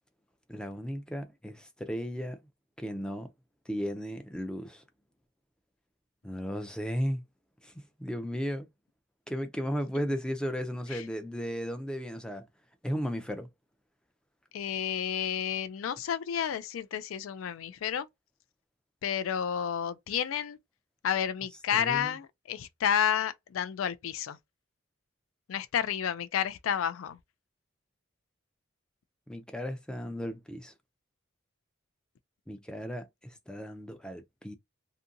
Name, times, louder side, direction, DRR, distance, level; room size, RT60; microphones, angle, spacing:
voice 1, 0.5-2.4 2.8-3.3 3.7-4.8 6.2-7.2 7.6-7.7 8.0-8.7 9.3-12.5 12.8-13.5 21.7-22.1 29.3-30.7 32.5-34.5, equal, 5° left, 0.3 m, -35 dB
voice 2, 14.5-18.1 19.0-20.6 21.0-24.4 25.5-27.2, left 8 dB, 75° left, 0.3 m, -31 dB
2.7 x 2.5 x 2.5 m
head